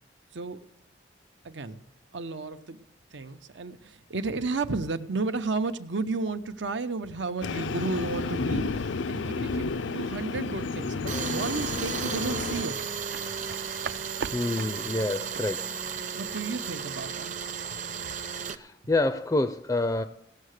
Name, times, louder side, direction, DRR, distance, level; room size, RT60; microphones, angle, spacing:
voice 1, 1.4-1.8 2.1-2.8 3.1-12.7 16.1-17.4, right 3 dB, 80° right, 10 dB, 0.8 m, -33 dB
Train, 7.4-12.7, left 4 dB, 85° left, 0.5 m, -31 dB
Tools, 11.1-18.6, right 6 dB, 45° right, 0.7 m, -34 dB
sound 1, 12.8-17.3 17.6-17.8, right 6 dB, 60° right, 0.4 m, -41 dB
voice 2, 14.3-15.7 18.5-20.0, left 2 dB, 15° left, 10 dB, 0.4 m, -27 dB
17.5 x 6.6 x 6.5 m, 0.75 s
head